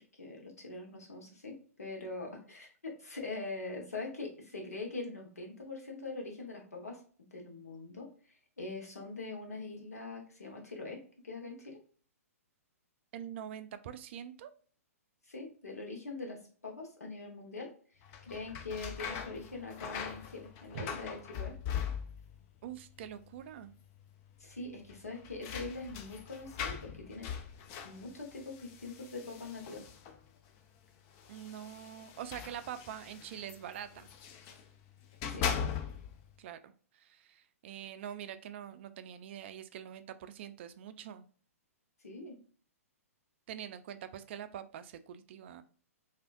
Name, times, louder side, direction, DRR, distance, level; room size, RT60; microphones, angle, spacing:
voice 1, 0.2-7.0 7.3-11.8 15.3-21.6 24.4-27.3 27.8-29.9 35.3-35.4 42.0-42.4, left 3 dB, 85° left, 1 dB, 1.1 m, -43 dB
voice 2, 13.1-14.5 20.7-20.9 22.6-23.7 31.3-34.1 36.4-41.3 43.5-45.6, right 9 dB, 50° right, 12 dB, 0.4 m, -44 dB
sound 1, 18.0-22.4 22.7-23.4 23.7-23.8 24.9-30.3 31.1-34.6 35.0-36.2, left 7 dB, 35° left, 0.4 m, -41 dB
3.3 x 2.8 x 2.5 m, 0.43 s
figure-of-eight pair, 120°, 8 cm